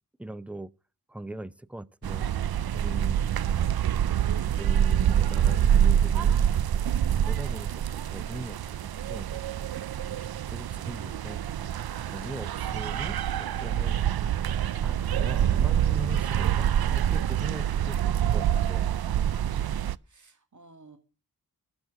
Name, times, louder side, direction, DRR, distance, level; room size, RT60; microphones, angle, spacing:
voice 1, 0.2-0.7 1.1-2.4 2.7-3.3 4.3-6.3 7.2-9.5 10.5-11.4 12.0-14.0 14.4-18.9, right 1 dB, 5° right, 0.6 m, -40 dB
sound 1, 2.0-20.0, right 10 dB, 75° right, 0.5 m, -26 dB
voice 2, 19.7-21.0, right 3 dB, 50° right, 2.2 m, -55 dB
12.5 x 6.3 x 7.8 m
cardioid pair, 45°, 37 cm